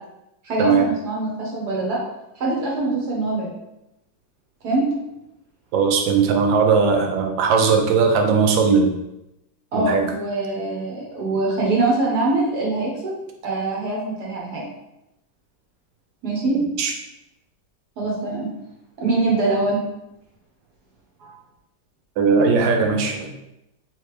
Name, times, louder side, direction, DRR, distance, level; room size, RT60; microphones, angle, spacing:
voice 1, 0.4-2.0 2.4-3.5 4.6-4.9 9.7-13.1 13.4-14.6 16.2-16.6 18.0-18.5 19.0-19.8 21.2-21.3, right 2 dB, 60° right, -3 dB, 1.5 m, -23 dB
voice 2, 5.7-8.9 9.7-10.0 16.8-16.9 22.2-23.3, right 5 dB, 80° right, 3 dB, 1.4 m, -18 dB
4.0 x 3.2 x 3.2 m, 0.89 s
omnidirectional pair, 2.0 m